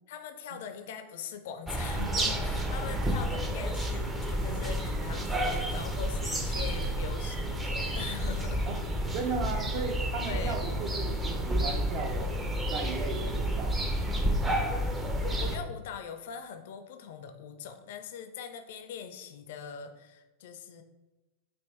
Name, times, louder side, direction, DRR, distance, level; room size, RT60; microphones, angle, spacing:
voice 1, 0.1-8.7 10.3-10.7 14.6-20.8, left 7 dB, 55° left, 8 dB, 0.4 m, -42 dB
sound 1, 1.7-15.6, equal, 10° right, 0.6 m, -30 dB
voice 2, 9.1-12.3 12.7-14.0, right 4 dB, 45° right, 3 dB, 0.8 m, -36 dB
5.2 x 2.8 x 3.2 m, 1.1 s
figure-of-eight pair, 90°, 0 cm